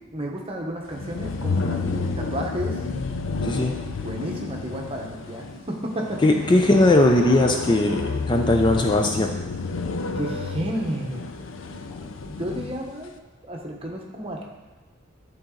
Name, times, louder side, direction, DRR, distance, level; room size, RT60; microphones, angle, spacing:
voice 1, 0.1-2.8 4.0-6.2 10.2-11.3 12.3-13.1 13.4-14.4, right 1 dB, 30° right, 0 dB, 1.0 m, -32 dB
sound 1, 0.9-12.9, left 3 dB, 80° left, 0.5 m, -30 dB
voice 2, 3.4-3.7 6.2-9.3, left 1 dB, 25° left, 3 dB, 0.4 m, -19 dB
10.5 x 4.1 x 3.8 m, 1.2 s
head